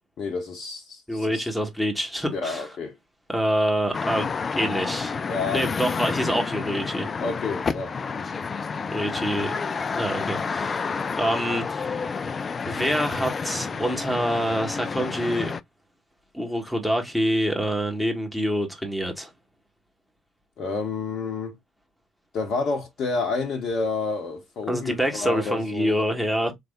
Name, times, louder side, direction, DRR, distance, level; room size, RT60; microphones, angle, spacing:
voice 1, 0.2-1.5 2.3-3.0 5.3-5.7 7.2-8.0 20.6-21.5 22.3-25.9, left 4 dB, 50° left, 0.8 m, -29 dB
voice 2, 1.1-2.7 3.3-4.3 4.6-5.2 5.5-7.1 8.9-9.5 9.9-12.2 12.6-15.6 16.3-19.3 24.7-26.5, equal, ahead, 1.5 m, -26 dB
sound 1, 3.9-15.6, left 5 dB, 30° left, 0.3 m, -30 dB
4.1 x 3.4 x 2.3 m
figure-of-eight pair, 50°, 0 cm